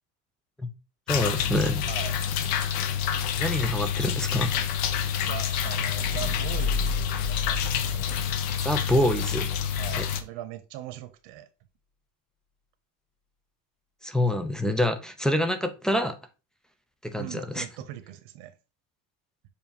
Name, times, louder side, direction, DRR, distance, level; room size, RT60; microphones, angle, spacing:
sound 1, 1.1-10.2, left 8 dB, 65° left, 1.0 m, -28 dB
voice 1, 1.1-1.8 3.4-4.5 8.6-9.5 10.0-10.1 14.0-16.1 17.0-17.6, left 1 dB, ahead, 0.3 m, -26 dB
voice 2, 5.2-8.2 9.8-11.5 17.2-18.5, right 13 dB, 85° right, 1.2 m, -40 dB
sound 2, 6.0-9.0, left 4 dB, 20° left, 1.5 m, -32 dB
7.1 x 2.7 x 5.3 m
cardioid pair, 160°, 38 cm